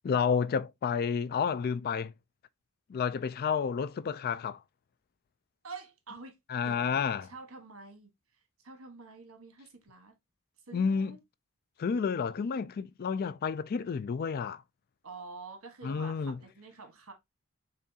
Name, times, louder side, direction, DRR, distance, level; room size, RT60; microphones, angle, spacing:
voice 1, 0.0-2.1 2.9-4.6 6.5-7.3 10.7-11.2 11.8-14.6 15.8-16.4, left 6 dB, 45° left, 0.3 m, -30 dB
voice 2, 5.6-6.3 6.6-8.1 8.6-10.1 10.7-11.2 15.0-17.1, right 4 dB, 70° right, 1.3 m, -47 dB
7.1 x 2.6 x 2.7 m
head